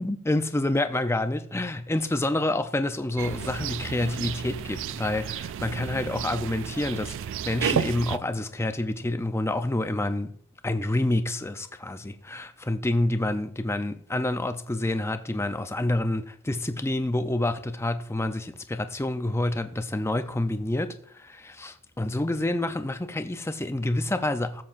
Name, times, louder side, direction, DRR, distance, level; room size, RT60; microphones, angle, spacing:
voice 1, 0.0-10.3 10.6-24.6, left 1 dB, 10° left, 0.5 m, -28 dB
sound 1, 3.2-8.2, right 8 dB, 60° right, 0.3 m, -32 dB
17.5 x 7.7 x 2.5 m
head